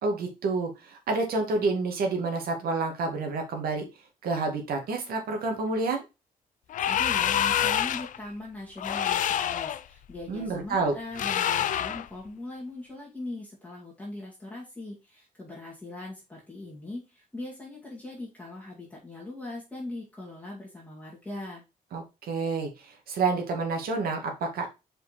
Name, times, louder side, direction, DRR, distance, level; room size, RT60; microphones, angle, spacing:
voice 1, 0.0-3.9 4.2-6.0 10.3-11.0 21.9-24.7, right 3 dB, 80° right, 3 dB, 2.2 m, -29 dB
sound 1, 6.7-8.2 8.8-9.8 11.1-12.1, left 10 dB, 60° left, 0.5 m, -26 dB
voice 2, 6.9-21.6, left 2 dB, 10° left, -5 dB, 2.2 m, -40 dB
5.1 x 5.1 x 4.2 m, 0.26 s
wide cardioid pair, 170°, 15 cm